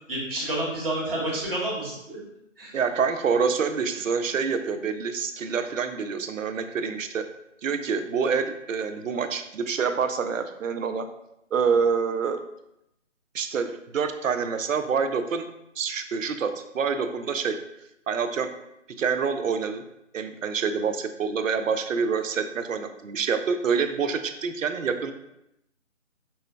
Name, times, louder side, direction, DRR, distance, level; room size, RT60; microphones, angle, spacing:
voice 1, 0.1-2.2 2.6-2.7, right 1 dB, 45° right, -5 dB, 1.4 m, -29 dB
voice 2, 2.7-7.3 7.6-11.1 11.5-12.4 13.3-15.5 15.8-17.6 18.1-18.5 19.0-19.8 20.1-25.1, right 6 dB, 75° right, 9 dB, 0.5 m, -26 dB
5.4 x 2.1 x 2.2 m, 0.83 s
figure-of-eight pair, 165°, 39 cm